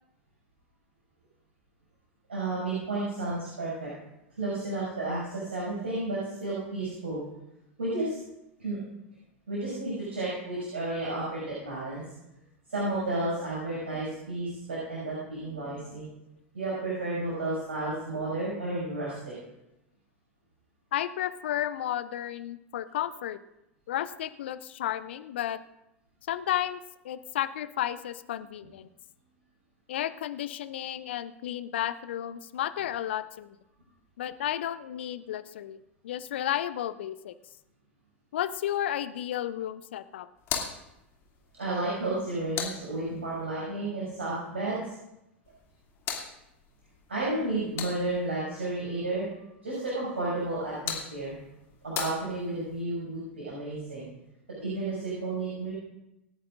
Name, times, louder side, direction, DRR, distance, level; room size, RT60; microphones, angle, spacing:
voice 1, 2.3-3.9 4.4-7.2 7.8-8.2 8.6-8.8 9.5-12.0 12.7-16.1 16.5-19.3 41.6-44.9 47.1-49.3 49.6-51.3 51.8-54.0 54.6-55.7, right 2 dB, 75° right, -6 dB, 6.4 m, -32 dB
voice 2, 20.9-23.4 23.9-25.6 26.3-26.8 27.0-28.9 29.9-33.6 34.2-35.8 36.0-37.3 38.3-40.3, left 11 dB, 60° left, 14 dB, 0.7 m, -32 dB
sound 1, 40.4-43.5 45.4-48.4 50.4-52.8, left 7 dB, 40° left, 2.6 m, -39 dB
26.5 x 10.5 x 2.6 m, 0.89 s
figure-of-eight pair, 85°, 7 cm